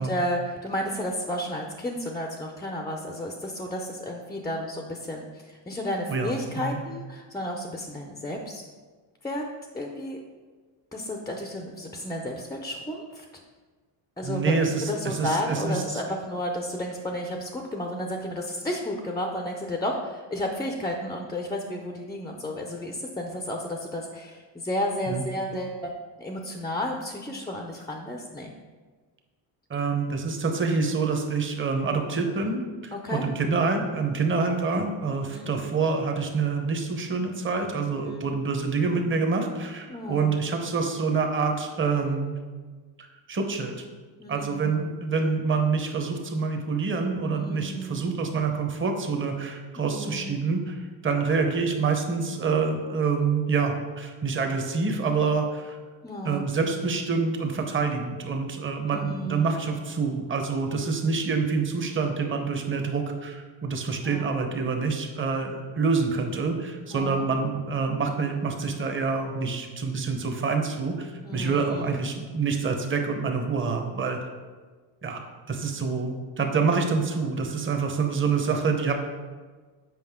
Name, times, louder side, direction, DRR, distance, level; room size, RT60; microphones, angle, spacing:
voice 1, 0.0-8.6 9.2-9.4 9.7-10.2 10.9-13.2 14.2-14.5 14.9-25.9 26.2-28.5 32.9-33.2 35.3-35.5 38.0-38.3 39.9-40.3 44.2-44.8 47.3-48.1 49.8-50.4 56.0-56.5 58.8-59.5 64.0-64.3 66.9-67.2 71.2-71.9, left 1 dB, 10° left, 2 dB, 0.5 m, -32 dB
voice 2, 6.1-6.8 14.2-16.0 25.1-25.2 29.7-42.4 43.0-43.8 44.3-50.8 51.0-55.8 56.2-74.3 75.0-75.2 75.5-78.9, right 4 dB, 25° right, 4 dB, 0.9 m, -27 dB
7.8 x 5.2 x 3.6 m, 1.4 s
cardioid pair, 120°, 47 cm